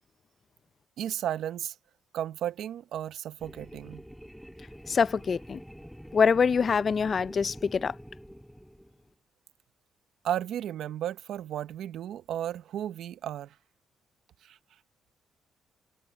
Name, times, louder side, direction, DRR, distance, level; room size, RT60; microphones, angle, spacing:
voice 1, 1.0-1.7 2.1-4.0 10.2-13.5 14.5-14.6, right 11 dB, 75° right, 0.8 m, -34 dB
sound 1, 3.4-9.1, equal, ahead, 4.2 m, -46 dB
voice 2, 4.9-5.6 6.1-7.9, left 6 dB, 40° left, 0.5 m, -24 dB
cardioid pair, 90°, 0 cm